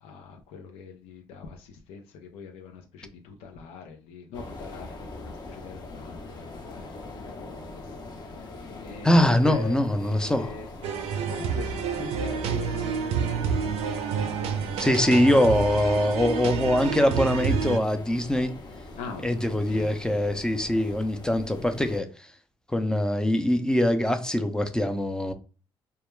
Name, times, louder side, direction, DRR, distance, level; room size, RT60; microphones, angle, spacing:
voice 1, 0.0-6.9 7.2-7.8 8.3-10.7 11.3-13.3 19.0-19.9, left 5 dB, 90° left, 0.4 m, -42 dB
sound 1, 4.3-22.0, left 2 dB, 45° left, 0.7 m, -41 dB
voice 2, 9.0-10.5 14.8-18.5 19.2-22.1 22.7-25.3, left 1 dB, 5° left, 0.4 m, -23 dB
sound 2, 10.8-17.8, right 6 dB, 85° right, 0.4 m, -29 dB
2.2 x 2.1 x 3.0 m
supercardioid pair, 65°, 10 cm